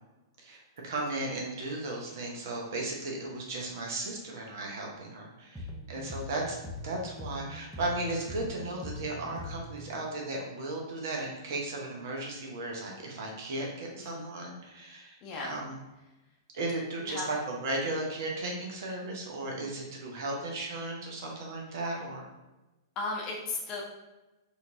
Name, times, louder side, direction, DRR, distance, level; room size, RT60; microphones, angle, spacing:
voice 1, 0.4-6.6 6.8-15.8 16.5-22.3, right 2 dB, 55° right, -1 dB, 0.8 m, -35 dB
sound 1, 5.5-10.1, left 1 dB, 5° right, 0.6 m, -42 dB
voice 2, 14.0-14.3 15.2-15.5 17.0-17.3 23.0-23.8, left 3 dB, 35° left, -2 dB, 0.7 m, -36 dB
4.2 x 2.6 x 2.7 m, 1.0 s
figure-of-eight pair, 110°, 2 cm